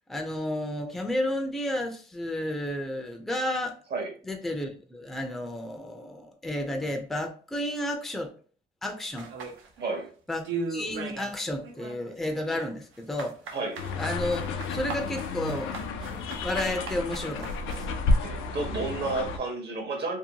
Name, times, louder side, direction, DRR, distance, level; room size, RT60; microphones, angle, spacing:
voice 1, 0.1-3.8 4.2-8.3 8.8-9.3 10.3-13.6 14.0-15.8 16.4-17.9, left 1 dB, ahead, 3 dB, 0.4 m, -32 dB
sound 1, 9.2-10.1 10.4-11.3 11.6-17.9, right 4 dB, 85° right, 0.6 m, -38 dB
sound 2, 13.8-19.4, left 3 dB, 85° left, 0.5 m, -31 dB
voice 2, 18.2-20.2, right 3 dB, 60° right, 3 dB, 0.9 m, -31 dB
2.7 x 2.1 x 2.7 m, 0.40 s
cardioid pair, 90°, 20 cm